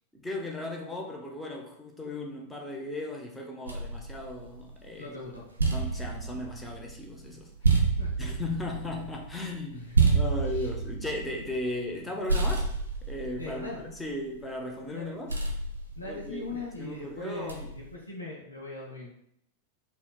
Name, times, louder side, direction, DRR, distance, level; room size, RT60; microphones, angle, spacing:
voice 1, 0.1-5.2 5.7-7.8 8.2-12.7 13.0-13.7 14.0-15.3 16.0-16.5 16.8-17.7, left 2 dB, 10° left, 0 dB, 0.6 m, -36 dB
sound 1, 3.7-4.9 5.3-12.0 12.3-14.5 15.3-16.8 17.5-17.9, right 4 dB, 75° right, 0.4 m, -29 dB
voice 2, 5.0-5.5 5.7-6.0 7.6-8.3 9.9-10.2 10.5-10.7 13.4-13.8 14.9-15.2 16.0-19.1, left 2 dB, 80° left, -4 dB, 0.7 m, -41 dB
4.0 x 2.0 x 2.3 m, 0.70 s
figure-of-eight pair, 90°, 0 cm